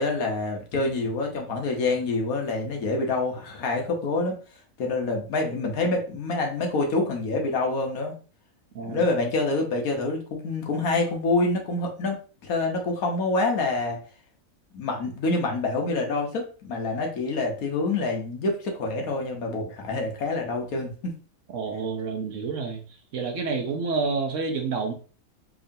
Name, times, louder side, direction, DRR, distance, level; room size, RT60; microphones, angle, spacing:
voice 1, 0.0-4.4 4.8-8.1 8.8-12.2 12.4-14.0 14.7-21.1, left 3 dB, 75° left, 1 dB, 1.4 m, -26 dB
voice 2, 21.5-22.8 23.1-24.9, right 4 dB, 65° right, 4 dB, 1.0 m, -28 dB
4.7 x 3.0 x 2.6 m, 0.38 s
omnidirectional pair, 1.6 m